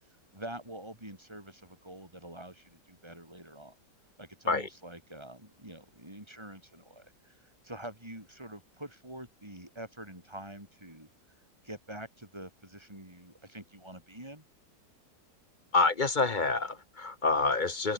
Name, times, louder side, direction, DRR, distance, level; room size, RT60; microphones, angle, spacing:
voice 1, 0.3-3.8 4.2-11.1 11.6-14.4, right 1 dB, 15° right, 7.4 m, -46 dB
voice 2, 15.7-17.9, left 3 dB, 30° left, 1.0 m, -27 dB
open air
omnidirectional pair, 1.9 m